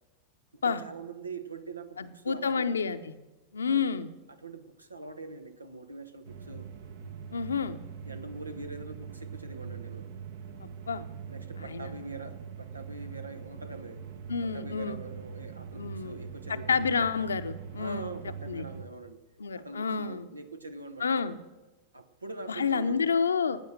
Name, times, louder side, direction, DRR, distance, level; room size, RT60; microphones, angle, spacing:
voice 1, 0.5-2.8 3.7-4.0 4.3-6.7 8.0-10.1 11.3-14.0 14.4-16.9 17.8-19.2 19.6-21.3 21.9-23.1, right 3 dB, 80° right, 10 dB, 1.2 m, -43 dB
voice 2, 2.0-3.0 3.5-4.1 7.3-7.8 10.6-11.1 11.6-11.9 14.3-15.0 15.8-16.2 16.7-18.1 18.5-18.7 19.4-20.3 21.0-21.4 22.5-23.6, left 5 dB, 70° left, 11 dB, 0.8 m, -29 dB
sound 1, 6.2-18.8, right 6 dB, 55° right, 1.3 m, -42 dB
16.0 x 9.3 x 6.6 m, 1.1 s
figure-of-eight pair, 90°, 0 cm